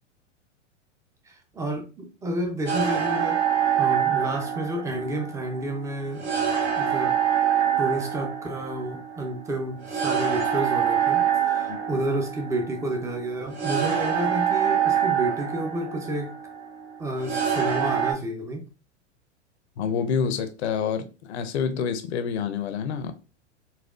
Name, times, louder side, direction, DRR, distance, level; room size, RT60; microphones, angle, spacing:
voice 1, 1.3-3.4 3.8-6.3 6.8-7.2 7.8-16.3 17.0-18.7, right 1 dB, 10° right, 0.4 m, -30 dB
sound 1, 2.7-18.1, right 8 dB, 65° right, 1.4 m, -25 dB
voice 2, 19.8-23.1, left 6 dB, 65° left, 0.7 m, -27 dB
4.1 x 2.3 x 2.3 m
hypercardioid pair, 110°, 36 cm